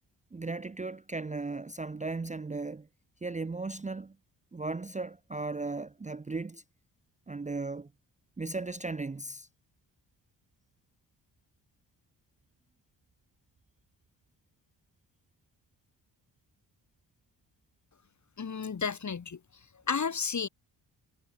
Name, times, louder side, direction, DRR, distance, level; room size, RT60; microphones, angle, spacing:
voice 1, 0.3-2.9 3.2-4.1 4.5-6.6 7.3-7.9 8.4-9.5, right 3 dB, 15° right, 0.7 m, -36 dB
voice 2, 18.4-19.4 19.9-20.5, left 6 dB, 35° left, 1.6 m, -32 dB
hypercardioid pair, 45°, 49 cm